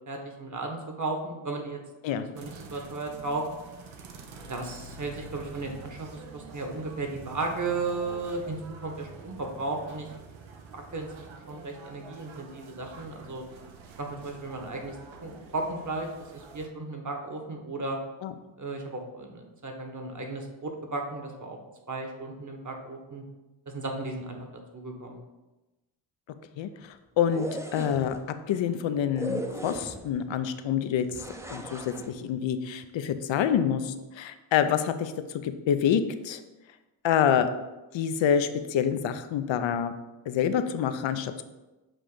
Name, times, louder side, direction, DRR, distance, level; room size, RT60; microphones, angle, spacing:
voice 1, 0.1-1.8 2.1-3.4 4.5-10.1 10.7-13.4 14.0-15.0 15.2-16.1 16.3-18.0 18.6-21.6 21.9-23.2 23.7-24.4 24.7-25.2, right 3 dB, 40° right, 3 dB, 1.3 m, -35 dB
sound 1, 2.3-16.7, right 4 dB, 75° right, 0.9 m, -47 dB
voice 2, 27.2-28.2 28.5-31.1 31.5-35.1 35.4-36.4 37.0-37.5 37.9-39.9 40.3-41.4, left 8 dB, 70° left, 10 dB, 0.6 m, -27 dB
sound 2, 27.2-28.2 29.2-30.2 31.1-32.1, right 1 dB, 5° right, 0.6 m, -37 dB
7.5 x 2.6 x 5.0 m, 1.1 s
cardioid pair, 60°, 47 cm